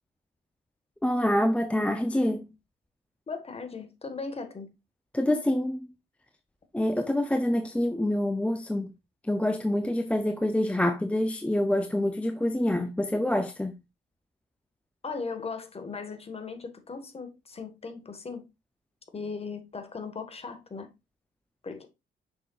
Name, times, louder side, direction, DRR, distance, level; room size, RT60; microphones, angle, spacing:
voice 1, 1.0-2.5 5.1-5.9 6.7-8.9 9.3-13.7, left 1 dB, 5° left, 0.5 m, -26 dB
voice 2, 3.3-4.7 15.0-18.4 19.1-20.9 21.6-21.9, left 4 dB, 30° left, 1.5 m, -38 dB
7.0 x 5.9 x 2.4 m
cardioid pair, 90°, 20 cm